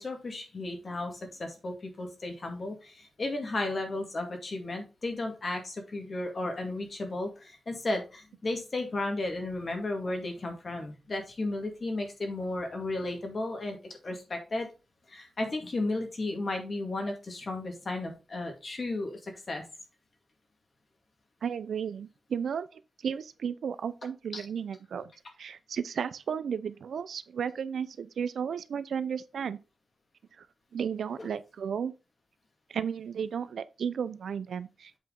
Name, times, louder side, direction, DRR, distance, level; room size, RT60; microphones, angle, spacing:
voice 1, 0.0-14.7 15.1-19.6 24.3-24.4 31.2-31.3, left 2 dB, 35° left, 2.1 m, -34 dB
voice 2, 21.4-25.1 25.4-29.6 30.4-30.5 30.7-31.9 32.7-34.9, right 7 dB, 75° right, 0.5 m, -34 dB
8.1 x 4.9 x 3.8 m
wide cardioid pair, 150°, 0 cm